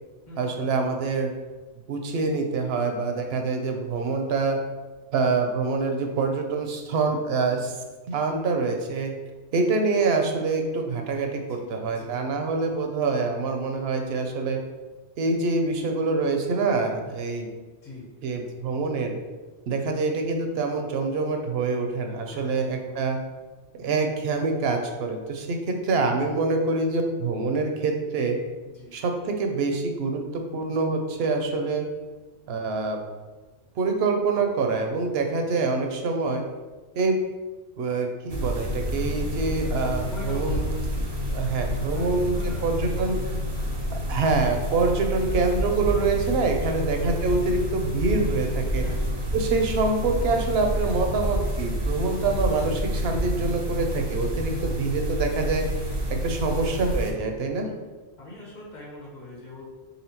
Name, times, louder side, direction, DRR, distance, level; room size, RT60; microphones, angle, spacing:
voice 1, 0.4-1.3 1.9-4.6 5.1-7.7 8.1-9.1 9.5-14.6 15.2-17.5 18.2-19.2 19.7-23.2 23.7-28.4 28.9-31.8 32.5-33.0 33.8-36.4 37.0-37.2 37.8-40.6 41.3-43.1 43.9-48.9 49.3-55.6 56.2-57.7, right 3 dB, 70° right, 4 dB, 0.8 m, -25 dB
voice 2, 11.5-12.5 17.8-18.0 22.3-23.0 28.6-28.9 31.5-31.6 34.4-34.5 40.1-40.7 41.9-43.0 43.5-43.8 46.6-46.8 48.8-49.0 54.4-54.6 56.4-56.5 57.6-57.8 58.2-59.7, left 2 dB, 45° left, -4 dB, 1.1 m, -43 dB
sound 1, 38.3-57.1, equal, 40° right, 0.3 m, -29 dB
4.1 x 3.4 x 2.9 m, 1.2 s
omnidirectional pair, 1.2 m